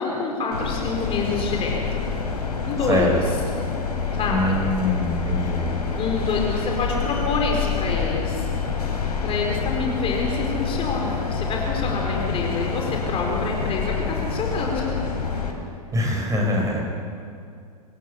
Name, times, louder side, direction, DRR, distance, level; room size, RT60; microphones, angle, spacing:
voice 1, 0.0-2.1 2.6-3.1 4.1-4.5 5.9-8.5 9.2-14.9, left 4 dB, 30° left, 0 dB, 4.3 m, -27 dB
sound 1, 0.5-15.5, left 5 dB, 75° left, 3.7 m, -27 dB
voice 2, 4.3-5.7 15.9-16.8, left 1 dB, 15° right, 1 dB, 5.7 m, -23 dB
24.0 x 15.0 x 8.3 m, 2.3 s
figure-of-eight pair, 95°, 20 cm